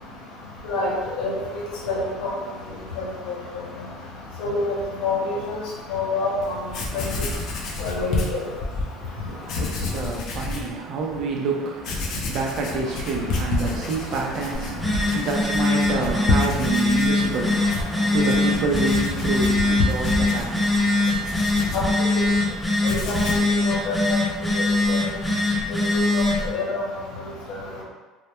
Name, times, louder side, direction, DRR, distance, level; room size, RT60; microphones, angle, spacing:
voice 1, 0.7-2.3 4.4-4.7 5.0-5.6 5.9-6.5 6.9-7.1 7.8-8.4 21.7-21.8 22.8-24.2 24.9-25.0 25.9-26.2 26.5-26.8, left 3 dB, 75° left, -4 dB, 0.8 m, -26 dB
Writing, 6.4-6.5 6.7-8.9 9.4-10.7 11.2-11.3 11.8-22.4 22.7-23.5, left 3 dB, 55° left, 0.4 m, -29 dB
voice 2, 9.0-21.3, right 4 dB, 55° right, 0 dB, 0.4 m, -28 dB
Telephone, 14.5-26.5, left 2 dB, ahead, 0.6 m, -22 dB
2.1 x 2.1 x 2.9 m, 1.3 s
cardioid pair, 130°, 0 cm